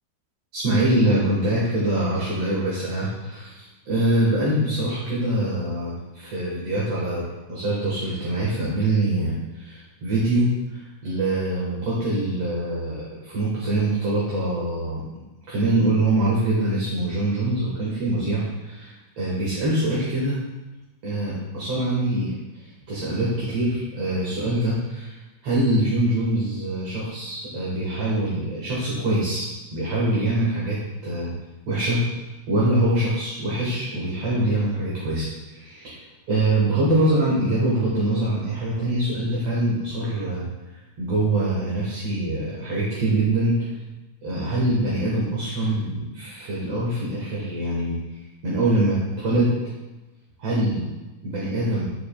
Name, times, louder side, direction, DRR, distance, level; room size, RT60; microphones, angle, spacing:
voice 1, 0.5-7.2 7.5-15.0 15.5-20.4 21.0-22.6 22.9-25.2 25.4-31.3 31.7-32.0 32.5-36.0 36.3-40.4 41.0-43.6 44.2-48.0 48.4-49.6 50.4-50.9 51.2-51.9, right 1 dB, 60° right, -7 dB, 2.4 m, -24 dB
11.5 x 4.9 x 2.3 m, 1.1 s
omnidirectional pair, 3.5 m